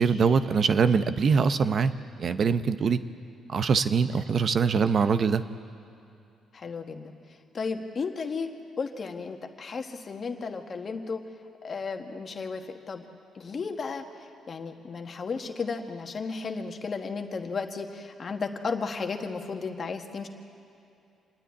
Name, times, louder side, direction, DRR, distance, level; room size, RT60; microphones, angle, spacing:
voice 1, 0.0-1.9 2.2-3.0 3.5-5.4, right 5 dB, 50° right, 11 dB, 0.8 m, -23 dB
voice 2, 6.5-7.1 7.5-8.5 8.8-11.2 11.6-13.0 13.3-14.0 14.5-20.3, left 4 dB, 45° left, 5 dB, 1.6 m, -34 dB
26.5 x 10.0 x 9.7 m, 2.7 s
cardioid pair, 90°, 0 cm